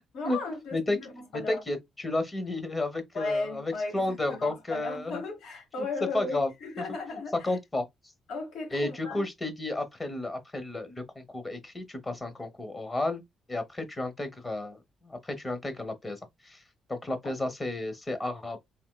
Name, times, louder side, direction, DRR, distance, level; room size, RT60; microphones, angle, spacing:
voice 1, 0.1-1.6 3.1-7.6 8.3-9.2 17.2-17.5, left 3 dB, 75° left, 1.6 m, -36 dB
voice 2, 1.3-5.2 5.8-5.9 6.1-6.5 6.8-6.9 7.4-7.9 8.7-13.2 13.5-16.6 16.9-18.6, left 2 dB, 25° left, 0.9 m, -32 dB
3.5 x 2.8 x 2.2 m
cardioid pair, 90°, 0 cm